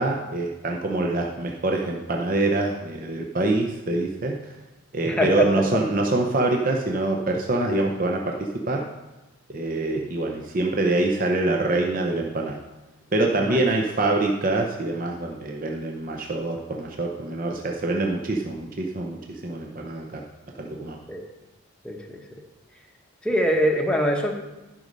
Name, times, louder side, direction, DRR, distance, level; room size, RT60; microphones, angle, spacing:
voice 1, 0.0-4.6 4.9-8.8 9.5-12.6 13.1-20.2 20.6-21.0, right 2 dB, 40° right, 1 dB, 0.6 m, -25 dB
voice 2, 5.0-5.5 13.4-13.6 21.1-21.2 21.8-22.2 23.2-24.3, equal, 5° left, 1 dB, 0.9 m, -23 dB
11.5 x 5.3 x 5.2 m, 1.1 s
head